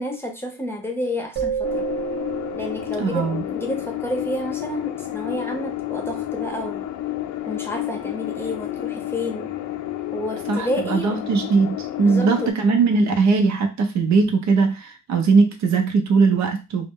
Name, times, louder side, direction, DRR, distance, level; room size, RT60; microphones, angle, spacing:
voice 1, 0.0-1.8 2.5-6.9 7.5-9.5 10.1-11.2 12.0-12.5, left 1 dB, 10° left, 0.7 m, -30 dB
sound 1, 1.4-4.0, right 7 dB, 35° right, 0.8 m, -30 dB
sound 2, 1.6-12.5, left 13 dB, 75° left, 0.5 m, -30 dB
voice 2, 3.0-3.4 10.5-16.9, right 4 dB, 65° right, 0.7 m, -20 dB
2.1 x 2.1 x 3.5 m
cardioid pair, 90°, 30 cm